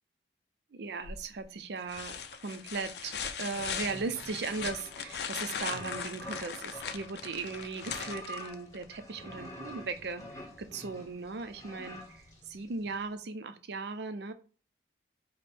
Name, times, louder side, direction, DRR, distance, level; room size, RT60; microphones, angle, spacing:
voice 1, 0.7-14.3, right 4 dB, 70° right, 10 dB, 0.5 m, -38 dB
sound 1, 1.0-1.4 1.9-8.8 10.6-10.7, left 7 dB, 70° left, 0.4 m, -39 dB
sound 2, 3.5-13.0, left 1 dB, 20° left, 0.8 m, -47 dB
5.1 x 2.1 x 4.1 m, 0.39 s
head